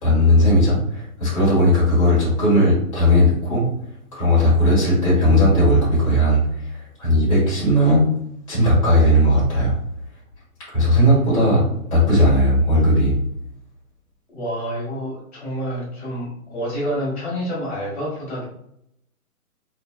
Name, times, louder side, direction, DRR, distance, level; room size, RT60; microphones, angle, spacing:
voice 1, 0.0-3.7 4.1-6.4 6.7-8.1 8.5-9.7 10.7-11.6 11.9-13.2, equal, 20° left, -9 dB, 1.5 m, -17 dB
voice 2, 10.7-11.1 11.4-11.7 14.3-18.4, equal, 45° left, -6 dB, 1.4 m, -28 dB
4.0 x 2.2 x 2.2 m, 0.73 s
hypercardioid pair, 170°, 45 cm